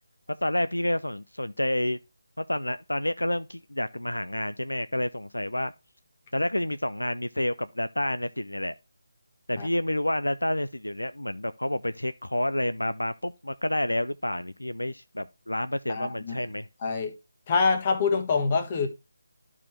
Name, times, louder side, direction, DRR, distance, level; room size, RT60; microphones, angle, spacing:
voice 1, 0.4-2.0 2.4-5.7 6.3-8.7 9.5-16.7, left 1 dB, 80° left, 0.5 m, -29 dB
voice 2, 15.9-16.3 16.8-17.1 17.5-18.9, left 4 dB, 25° left, 1.4 m, -25 dB
11.5 x 4.8 x 3.1 m
figure-of-eight pair, 155°, 0 cm